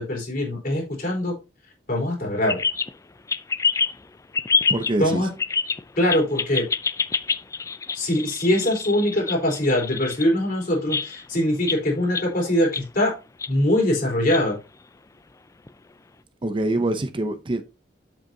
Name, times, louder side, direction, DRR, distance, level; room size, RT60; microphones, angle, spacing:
voice 1, 0.0-1.3 1.9-2.6 5.0-5.3 6.0-6.6 7.9-13.1 13.5-14.6, left 1 dB, 55° left, 4.1 m, -22 dB
sound 1, 2.5-2.9 3.3-4.0 4.3-5.0 5.4-5.8 6.1-10.3 10.9-11.4 11.7-11.8 12.1-12.8 13.4-13.5 14.2-14.4 15.7-15.8, left 5 dB, 20° left, 0.3 m, -26 dB
voice 2, 4.7-5.2 16.4-17.6, right 1 dB, 30° right, 0.6 m, -24 dB
7.7 x 7.4 x 2.7 m
head